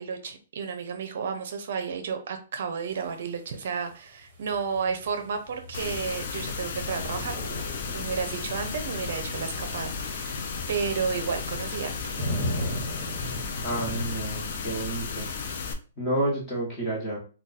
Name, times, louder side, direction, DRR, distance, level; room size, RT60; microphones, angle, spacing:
voice 1, 0.0-10.4 10.7-12.0, right 6 dB, 55° right, 6 dB, 0.5 m, -32 dB
sound 1, 4.3-14.0, equal, 25° right, 1.0 m, -37 dB
sound 2, 5.7-15.7, left 5 dB, 50° left, 0.5 m, -34 dB
voice 2, 13.6-15.3 16.0-17.2, right 1 dB, 15° left, -4 dB, 1.2 m, -30 dB
2.5 x 2.2 x 4.0 m, 0.36 s
hypercardioid pair, 165°, 0 cm